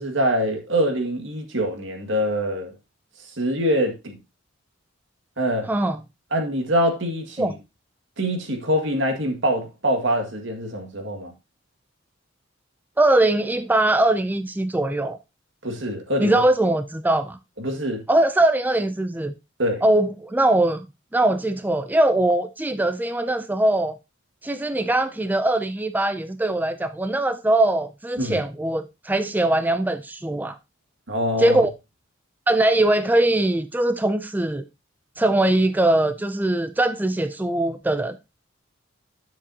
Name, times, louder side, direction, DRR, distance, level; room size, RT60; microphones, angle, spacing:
voice 1, 0.0-2.7 3.4-4.2 5.4-5.7 6.3-7.6 8.2-11.3 15.6-16.4 17.6-18.0 19.6-19.8 28.2-28.4 31.1-31.6, equal, 70° right, 2.0 m, -24 dB
voice 2, 13.0-15.2 16.2-17.4 18.1-19.4 19.8-20.8 21.1-24.0 24.4-30.6 31.4-31.7 32.5-34.7 35.2-38.2, right 1 dB, 10° right, 0.4 m, -21 dB
10.0 x 7.2 x 2.8 m
head